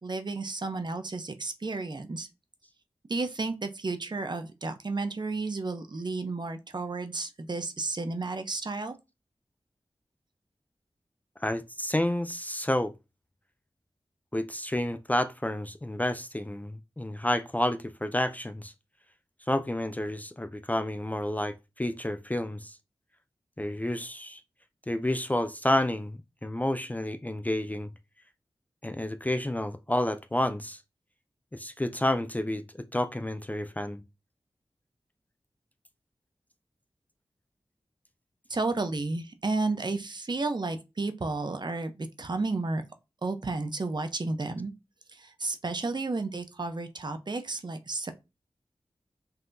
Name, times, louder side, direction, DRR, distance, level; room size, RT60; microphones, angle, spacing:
voice 1, 0.0-2.3 3.1-9.0 38.5-42.8 43.2-44.7 45.1-48.1, right 3 dB, 45° right, 0.6 m, -32 dB
voice 2, 11.4-12.9 14.3-18.7 19.5-22.8 23.6-24.4 24.9-27.9 28.8-30.8 31.5-34.0, left 1 dB, 15° left, 0.4 m, -30 dB
5.5 x 2.7 x 2.6 m
cardioid pair, 50°, 10 cm